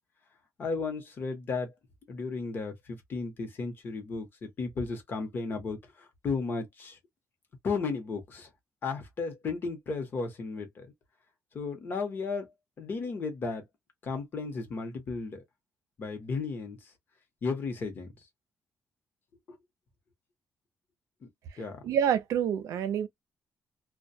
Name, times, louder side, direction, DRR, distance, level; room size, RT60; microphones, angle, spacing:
voice 1, 0.6-1.7 2.1-7.0 7.6-8.5 8.8-10.9 11.5-12.5 12.8-13.6 14.0-15.4 16.0-16.9 17.4-18.1 19.5-19.6 21.6-21.8, left 4 dB, 40° left, 0.9 m, -34 dB
voice 2, 21.8-23.1, right 9 dB, 85° right, 0.5 m, -27 dB
2.2 x 2.1 x 2.6 m
cardioid pair, 175°, 6 cm